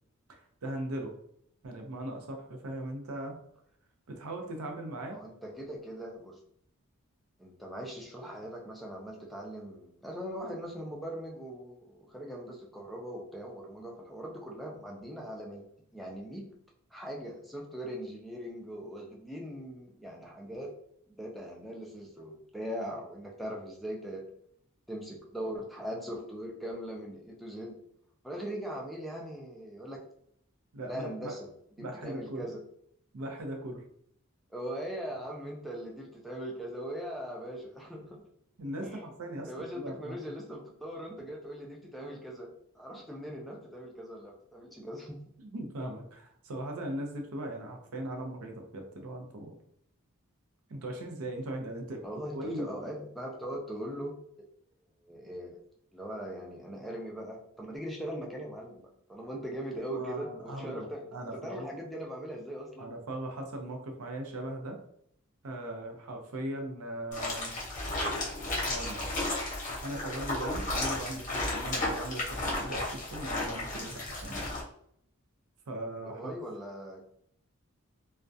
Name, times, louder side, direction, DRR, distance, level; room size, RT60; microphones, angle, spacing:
voice 1, 0.3-1.1 1.6-3.4 4.1-5.2 30.7-31.3 31.8-32.5 33.1-33.8 38.6-40.2 45.4-49.6 50.7-52.0 52.3-52.7 59.9-61.7 62.8-64.8 65.4-67.5 68.7-69.1 69.8-74.4 75.7-76.3, right 1 dB, 85° right, 3 dB, 0.5 m, -39 dB
voice 2, 5.1-6.4 7.4-15.7 15.9-16.5 16.9-20.7 21.2-24.3 24.9-27.8 28.2-30.0 30.9-31.5 31.8-32.6 34.5-38.3 38.8-39.1 39.5-45.2 52.0-54.2 55.0-55.6 55.9-61.1 61.3-62.9 76.0-77.0, equal, ahead, -2 dB, 0.3 m, -40 dB
sound 1, 67.1-74.6, left 2 dB, 35° left, 0.7 m, -33 dB
2.3 x 2.1 x 2.6 m, 0.68 s
head